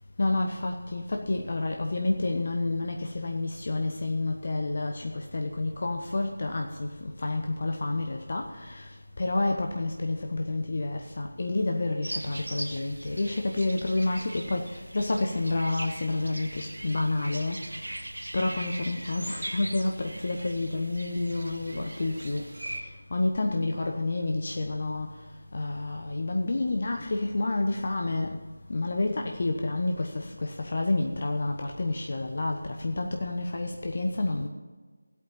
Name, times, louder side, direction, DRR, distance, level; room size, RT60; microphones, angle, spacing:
voice 1, 0.2-8.9 9.2-17.9 18.3-25.2 25.5-28.4 28.7-34.5, left 2 dB, 40° left, 3 dB, 1.0 m, -29 dB
sound 1, 12.0-22.8, right 1 dB, 65° right, 1.8 m, -40 dB
15.5 x 8.4 x 5.6 m, 1.4 s
figure-of-eight pair, 165°, 0 cm